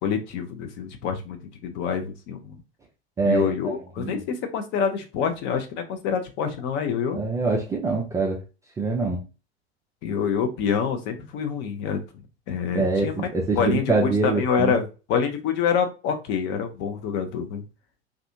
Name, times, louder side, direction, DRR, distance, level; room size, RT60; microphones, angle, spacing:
voice 1, 0.0-1.4 1.6-2.6 3.2-7.2 10.0-12.0 12.5-13.2 13.5-17.6, left 6 dB, 35° left, 6 dB, 0.6 m, -26 dB
voice 2, 3.2-4.2 7.1-8.4 8.8-9.2 12.7-14.8, right 3 dB, 10° right, -1 dB, 0.3 m, -25 dB
2.4 x 2.3 x 2.6 m, 0.30 s
figure-of-eight pair, 80°, 33 cm